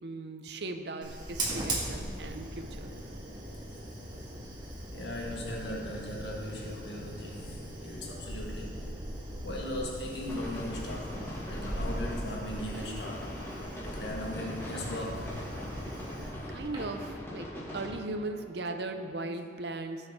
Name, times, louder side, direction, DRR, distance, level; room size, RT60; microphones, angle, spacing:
voice 1, 0.0-2.9 16.5-20.1, right 2 dB, 60° right, 6 dB, 0.7 m, -38 dB
Fire, 1.0-17.1, right 1 dB, 25° right, 1.9 m, -39 dB
voice 2, 4.9-8.9 9.4-11.2 11.5-13.4 13.8-15.3, left 1 dB, 65° left, -2 dB, 1.8 m, -38 dB
sound 1, 10.3-17.9, equal, 15° left, 2.1 m, -41 dB
17.0 x 6.5 x 3.7 m, 2.8 s
head